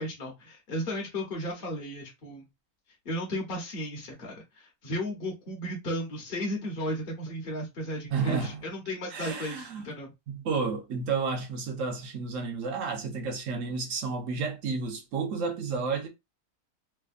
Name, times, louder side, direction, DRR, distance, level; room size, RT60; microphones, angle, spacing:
voice 1, 0.0-2.5 3.0-10.1, equal, 45° left, 0.8 m, -34 dB
voice 2, 8.1-8.6 9.1-9.9 10.3-16.1, right 5 dB, 65° right, 1.0 m, -31 dB
3.3 x 2.1 x 2.4 m
omnidirectional pair, 1.6 m